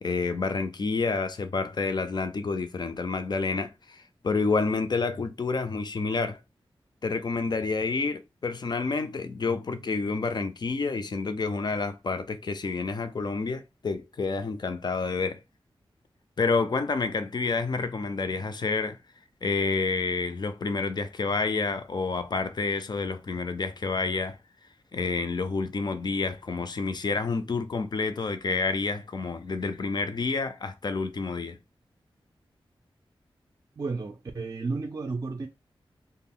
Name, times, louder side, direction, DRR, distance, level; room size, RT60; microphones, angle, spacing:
voice 1, 0.0-6.4 7.0-15.4 16.4-19.0 19.4-24.4 24.9-31.6, left 4 dB, 50° left, 0.4 m, -29 dB
voice 2, 33.8-35.5, right 3 dB, 40° right, 0.4 m, -32 dB
2.2 x 2.0 x 3.6 m
wide cardioid pair, 65°, 10 cm